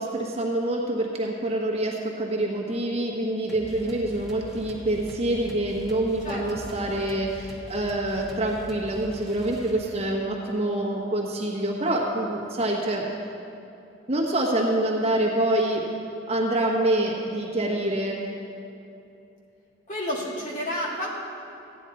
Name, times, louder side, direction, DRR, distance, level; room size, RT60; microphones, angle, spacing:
voice 1, 0.0-13.0 14.1-15.8 16.3-18.2, right 1 dB, 35° right, -2 dB, 1.3 m, -26 dB
sound 1, 3.5-10.2, equal, ahead, 1.2 m, -43 dB
voice 2, 6.2-6.8 19.9-21.1, left 1 dB, 40° left, -4 dB, 2.1 m, -31 dB
14.5 x 10.0 x 4.2 m, 2.8 s
head